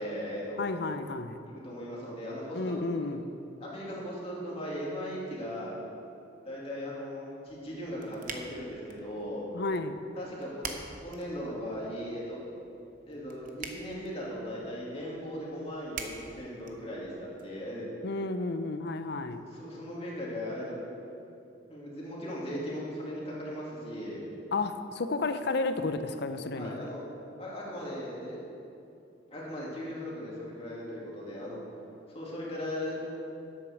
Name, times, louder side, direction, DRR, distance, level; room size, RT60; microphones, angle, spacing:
voice 1, 0.0-0.6 1.4-3.2 3.6-5.7 6.4-9.4 10.2-12.4 13.1-17.9 19.4-20.8 21.7-24.2 26.5-27.0 27.4-28.4 29.3-31.6 32.1-33.0, equal, 30° left, -5 dB, 2.5 m, -38 dB
voice 2, 0.6-1.4 2.5-3.3 9.5-10.0 18.0-19.4 24.5-26.9, left 3 dB, 60° left, 10 dB, 0.6 m, -32 dB
sound 1, 7.5-17.4, right 5 dB, 45° right, 0.9 m, -47 dB
10.0 x 8.2 x 6.5 m, 2.7 s
head